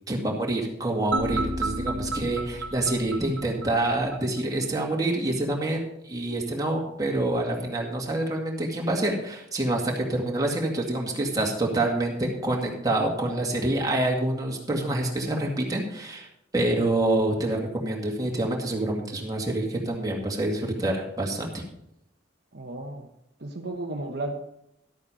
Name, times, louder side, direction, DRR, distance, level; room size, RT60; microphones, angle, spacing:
voice 1, 0.1-16.3 16.5-21.6, right 1 dB, 20° right, -1 dB, 2.1 m, -27 dB
sound 1, 1.1-4.2, right 2 dB, 75° right, 1.2 m, -31 dB
voice 2, 22.5-23.1 23.4-24.3, right 2 dB, 60° right, 3 dB, 1.0 m, -33 dB
12.0 x 8.6 x 5.0 m, 0.82 s
head